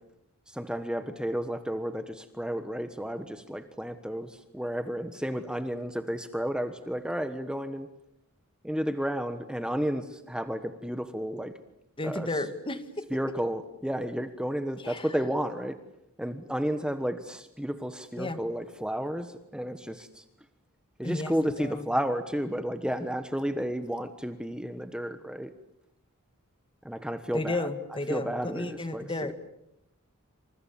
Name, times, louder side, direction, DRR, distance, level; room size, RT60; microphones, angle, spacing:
voice 1, 0.5-7.9 8.6-11.5 12.0-12.3 13.1-15.8 16.2-20.2 21.0-25.5 26.8-27.7 28.1-29.0, equal, 5° right, 9 dB, 1.3 m, -32 dB
voice 2, 12.0-13.0 14.8-15.2 18.2-18.4 21.0-21.9 27.3-29.3, left 2 dB, 25° left, 11 dB, 2.0 m, -33 dB
28.0 x 27.0 x 7.2 m, 0.83 s
head